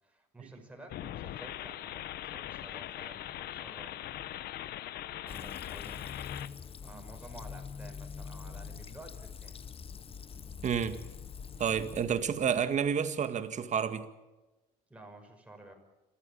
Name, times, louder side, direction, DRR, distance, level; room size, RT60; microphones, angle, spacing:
voice 1, 0.0-4.3 5.2-6.0 6.8-9.7 14.9-15.7, right 1 dB, 5° right, 5.9 m, -52 dB
sound 1, 0.9-6.5, left 13 dB, 70° left, 0.9 m, -41 dB
Fill (with liquid), 5.3-12.9, left 6 dB, 35° left, 0.9 m, -45 dB
voice 2, 10.6-11.0 11.6-14.1, right 7 dB, 45° right, 2.0 m, -30 dB
29.5 x 14.0 x 8.7 m
cardioid pair, 110°, 17 cm